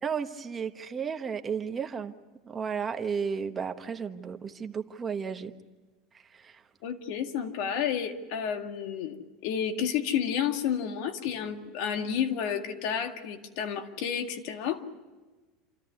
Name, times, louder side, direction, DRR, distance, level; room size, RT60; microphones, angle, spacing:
voice 1, 0.0-2.1 2.5-5.5 6.3-6.6, right 6 dB, 20° right, 6 dB, 1.3 m, -33 dB
voice 2, 6.8-14.8, left 8 dB, 65° left, 6 dB, 2.0 m, -31 dB
28.0 x 14.0 x 9.5 m, 1.3 s
supercardioid pair, 130°, 0 cm